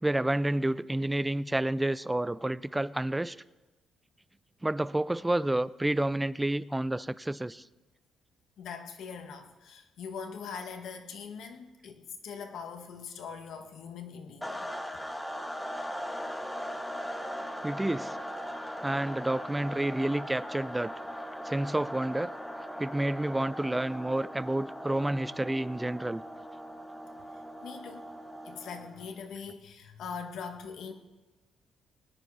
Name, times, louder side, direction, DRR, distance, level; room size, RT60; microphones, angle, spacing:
voice 1, 0.0-3.4 4.6-7.6 17.6-18.2 18.8-20.9 21.4-22.3 22.8-26.2, right 1 dB, 10° right, 18 dB, 0.4 m, -29 dB
voice 2, 8.6-14.7 27.6-28.1 28.4-30.9, left 6 dB, 75° left, 6 dB, 1.5 m, -42 dB
sound 1, 14.4-29.2, equal, 5° left, 1.2 m, -39 dB
19.5 x 9.7 x 4.7 m, 1.1 s
cardioid pair, 90°, 0 cm